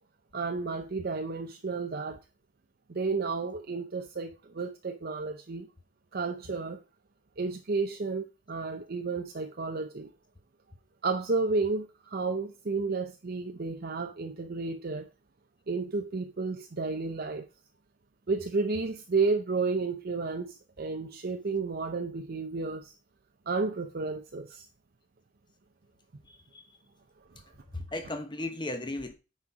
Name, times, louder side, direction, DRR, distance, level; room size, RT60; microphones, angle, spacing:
voice 1, 0.3-2.2 2.9-5.7 6.1-6.8 7.4-10.1 11.0-15.1 15.7-17.5 18.3-22.9 23.5-24.6, right 4 dB, 50° right, 0.6 m, -32 dB
voice 2, 26.2-26.7 27.7-29.1, left 2 dB, 25° left, 1.1 m, -36 dB
9.6 x 4.4 x 4.8 m
head